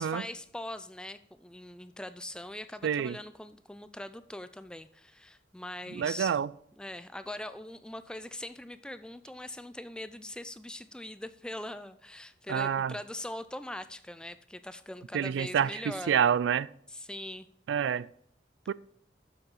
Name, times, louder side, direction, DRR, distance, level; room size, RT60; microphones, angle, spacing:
voice 1, 0.0-6.4 6.8-16.2 16.9-17.5, left 1 dB, 5° left, 0.3 m, -42 dB
voice 2, 2.8-3.2 5.9-6.5 12.5-12.9 15.1-16.7 17.7-18.1 18.7-18.8, right 8 dB, 85° right, 0.3 m, -28 dB
7.9 x 7.3 x 5.4 m
head